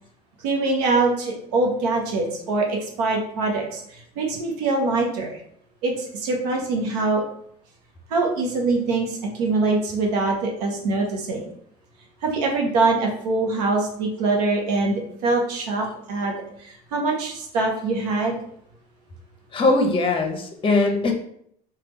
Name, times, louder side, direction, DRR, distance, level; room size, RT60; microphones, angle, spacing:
voice 1, 0.4-5.4 5.8-7.2 8.1-11.5 12.2-16.3 16.6-18.4, right 3 dB, 85° right, 1 dB, 0.8 m, -23 dB
voice 2, 19.5-21.1, left 2 dB, 25° left, 4 dB, 0.7 m, -20 dB
3.3 x 2.3 x 3.0 m, 0.68 s
hypercardioid pair, 80°, 20 cm